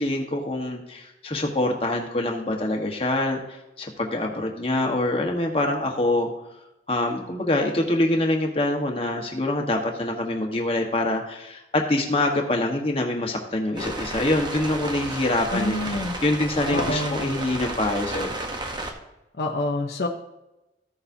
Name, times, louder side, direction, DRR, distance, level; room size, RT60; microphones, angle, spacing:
voice 1, 0.0-6.3 6.9-18.4, left 1 dB, 35° left, 1 dB, 1.2 m, -25 dB
Rain falling onto umbrella, 13.7-18.9, right 2 dB, 25° right, 1.0 m, -32 dB
voice 2, 15.5-16.2 16.7-17.2 19.4-20.1, left 2 dB, 60° left, 2 dB, 0.8 m, -27 dB
14.5 x 6.9 x 2.7 m, 0.95 s
head